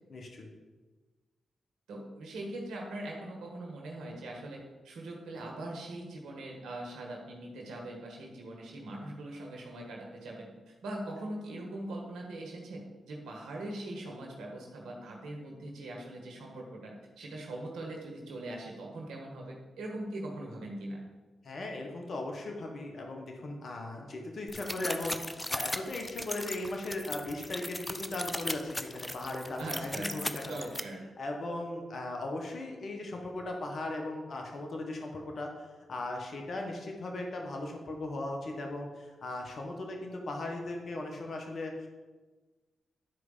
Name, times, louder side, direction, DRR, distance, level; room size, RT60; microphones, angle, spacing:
voice 1, 0.1-0.5 21.4-30.7 31.2-41.9, left 2 dB, 60° left, 2 dB, 1.5 m, -38 dB
voice 2, 1.9-21.0 29.6-30.1 30.5-31.0, right 1 dB, 80° right, -1 dB, 1.5 m, -41 dB
sound 1, 24.5-30.8, left 1 dB, 20° left, 0.7 m, -37 dB
10.5 x 4.8 x 5.6 m, 1.3 s
supercardioid pair, 40°, 0 cm